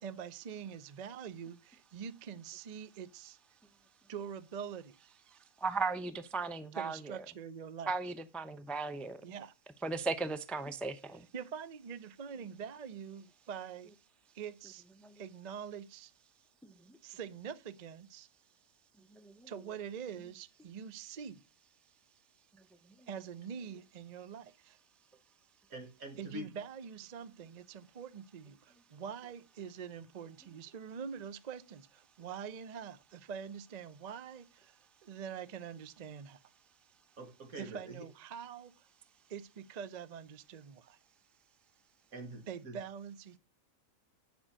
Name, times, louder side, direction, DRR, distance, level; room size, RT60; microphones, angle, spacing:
voice 1, 0.0-3.4 4.1-5.0 6.7-7.9 9.2-9.5 11.1-13.9 14.3-14.8 15.2-16.1 17.0-18.3 19.5-21.4 23.1-24.8 26.2-36.4 37.6-38.7 39.3-41.0 42.5-43.4, right 7 dB, 45° right, 0.5 m, -45 dB
voice 2, 5.6-7.2 7.9-9.2 9.8-11.3 15.0-15.2 19.1-19.5, right 4 dB, ahead, 0.5 m, -36 dB
voice 3, 25.7-26.5 37.2-38.1 42.1-42.8, right 1 dB, 85° right, 2.2 m, -45 dB
10.0 x 5.4 x 6.4 m
omnidirectional pair, 1.4 m